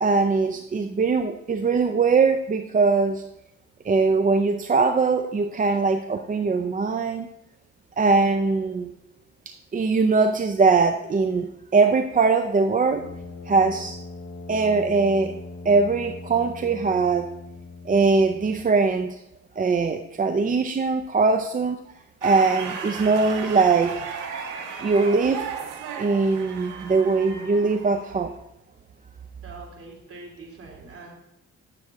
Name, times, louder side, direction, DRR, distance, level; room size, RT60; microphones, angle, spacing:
voice 1, 0.0-3.2 3.8-7.3 8.0-8.9 9.5-11.5 11.7-13.0 13.5-14.0 14.5-15.3 15.6-17.3 17.9-19.2 19.6-21.8 22.2-23.9 24.8-25.5 26.0-28.3, right 4 dB, 25° right, 7 dB, 0.5 m, -21 dB
Brass instrument, 12.9-18.8, left 3 dB, 60° left, 1.3 m, -40 dB
sound 1, 22.2-28.4, right 6 dB, 90° right, 1.5 m, -35 dB
voice 2, 29.4-31.1, right 3 dB, 50° right, -1 dB, 3.1 m, -43 dB
9.6 x 7.2 x 3.8 m, 0.81 s
cardioid pair, 90°, 30 cm